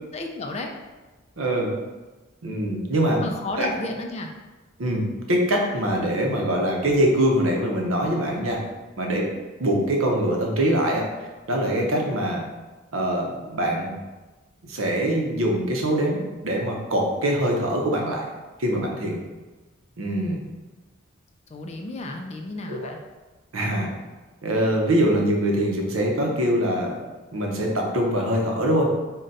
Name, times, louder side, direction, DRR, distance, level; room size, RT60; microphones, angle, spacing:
voice 1, 0.1-0.7 3.2-4.3 21.5-23.0, left 2 dB, 30° left, 3 dB, 0.4 m, -32 dB
voice 2, 1.4-1.8 2.4-3.3 3.6-3.7 4.8-8.6 9.0-9.3 9.6-11.0 11.5-12.4 12.9-13.9 14.6-18.3 18.6-19.2 20.0-20.4 22.7-22.9 23.5-23.9 24.4-26.9 27.3-28.9, right 1 dB, 80° right, 0 dB, 0.7 m, -23 dB
3.8 x 2.2 x 4.0 m, 1.2 s
head